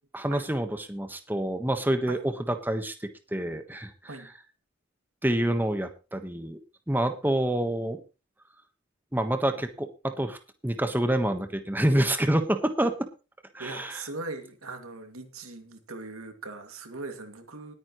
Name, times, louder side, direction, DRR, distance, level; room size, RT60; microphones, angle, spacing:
voice 1, 0.1-2.9 3.3-3.9 5.2-6.6 6.9-8.0 9.1-12.9 13.5-14.0, right 1 dB, 10° right, 7 dB, 1.2 m, -27 dB
voice 2, 13.6-17.7, right 3 dB, 90° right, 6 dB, 2.4 m, -40 dB
19.5 x 9.6 x 3.1 m, 0.31 s
head